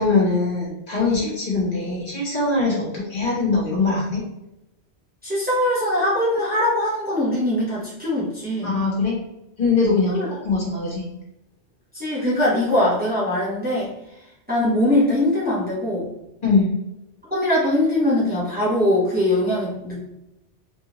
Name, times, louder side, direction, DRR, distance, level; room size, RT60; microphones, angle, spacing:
voice 1, 0.0-4.2 8.6-9.2 9.6-11.0 16.4-16.7, left 3 dB, 45° left, -6 dB, 1.4 m, -22 dB
voice 2, 5.2-8.8 10.1-10.3 11.9-13.9 14.5-16.1 17.3-20.1, left 1 dB, 10° right, -8 dB, 1.2 m, -21 dB
3.6 x 3.3 x 2.9 m, 0.89 s
omnidirectional pair, 1.2 m